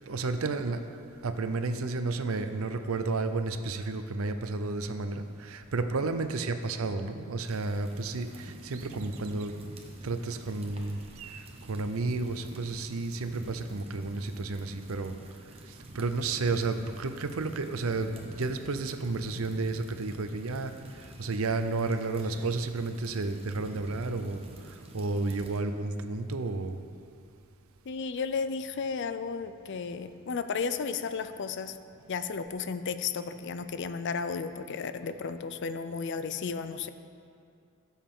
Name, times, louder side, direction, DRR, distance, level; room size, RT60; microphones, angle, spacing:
voice 1, 0.1-0.8 1.2-9.5 10.0-15.2 15.9-20.7 21.2-26.8, right 3 dB, 75° right, 8 dB, 0.6 m, -32 dB
sound 1, 7.5-25.6, right 1 dB, 30° right, 1.0 m, -48 dB
voice 2, 27.9-31.8 32.1-36.9, left 5 dB, 55° left, 11 dB, 0.5 m, -33 dB
15.5 x 7.2 x 3.8 m, 2.4 s
head